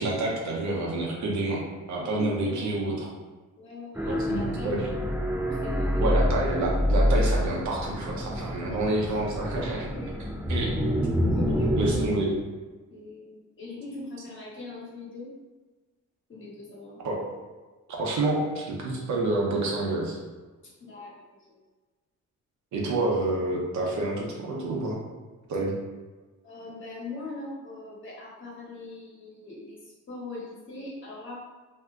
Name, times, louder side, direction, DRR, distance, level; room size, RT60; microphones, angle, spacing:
voice 1, 0.0-1.6 1.9-3.1 4.1-4.8 6.0-9.9 10.5-10.7 11.8-12.3 17.0-17.3 17.9-20.2 22.7-25.0 25.5-25.7, right 2 dB, 70° right, -2 dB, 0.8 m, -28 dB
voice 2, 2.0-2.8 3.6-4.9 5.6-6.0 8.3-8.8 9.5-10.1 11.2-12.0 12.9-15.3 16.3-17.0 20.8-21.2 21.5-21.6 26.4-31.4, left 2 dB, 40° left, -6 dB, 1.3 m, -41 dB
sound 1, 3.9-12.1, equal, 5° right, 0.4 m, -27 dB
2.7 x 2.2 x 3.5 m, 1.3 s
cardioid pair, 90°, 30 cm